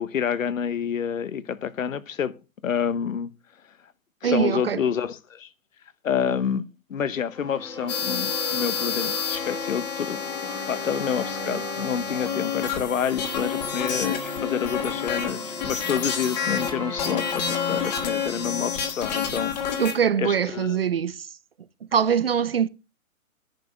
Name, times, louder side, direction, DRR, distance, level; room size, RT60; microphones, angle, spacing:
voice 1, 0.0-2.4 2.6-3.3 4.2-5.5 6.0-19.8 20.2-20.8, left 7 dB, 65° left, 1.1 m, -28 dB
voice 2, 4.2-4.8 19.8-21.3 21.9-22.7, right 8 dB, 45° right, 0.5 m, -23 dB
sound 1, 7.3-19.7, left 2 dB, 10° left, 1.4 m, -36 dB
sound 2, 7.9-16.7 17.0-20.0, left 7 dB, 30° left, 1.9 m, -29 dB
10.5 x 5.3 x 7.7 m
hypercardioid pair, 165°, 43 cm